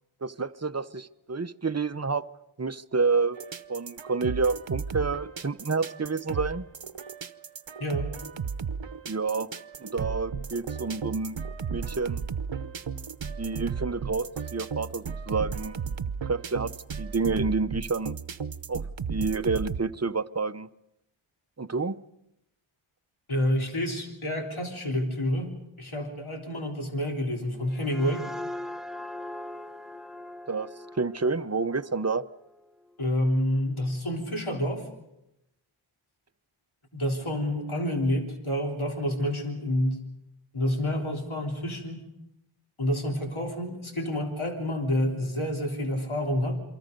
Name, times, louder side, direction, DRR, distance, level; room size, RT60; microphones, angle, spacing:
voice 1, 0.2-2.3 2.6-3.4 3.7-6.7 9.1-9.5 9.8-11.4 11.7-12.2 13.4-15.8 16.3-18.2 18.7-18.8 19.1-20.7 21.6-22.0 30.5-30.7 31.0-32.2, right 4 dB, 30° right, 12 dB, 0.7 m, -29 dB
sound 1, 3.3-19.8, right 6 dB, 60° right, 0.9 m, -35 dB
voice 2, 7.8-8.1 23.3-28.3 33.0-34.9 36.9-40.0 40.5-42.1 42.8-46.6, left 1 dB, 70° left, 1 dB, 3.5 m, -28 dB
sound 2, 27.5-32.9, left 1 dB, ahead, 0.9 m, -41 dB
28.0 x 24.0 x 5.3 m, 0.87 s
wide cardioid pair, 45°, 50 cm